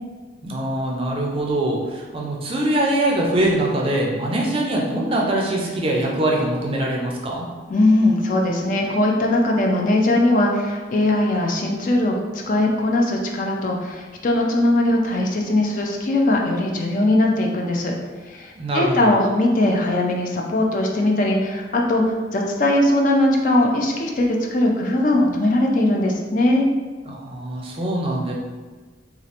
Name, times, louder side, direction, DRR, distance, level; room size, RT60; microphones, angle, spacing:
voice 1, 0.4-7.5 18.6-19.1 27.1-28.3, right 1 dB, 30° right, -1 dB, 0.4 m, -23 dB
voice 2, 7.7-17.9 18.2-26.7, left 1 dB, 45° left, 0 dB, 0.4 m, -20 dB
3.1 x 2.4 x 2.8 m, 1.4 s
head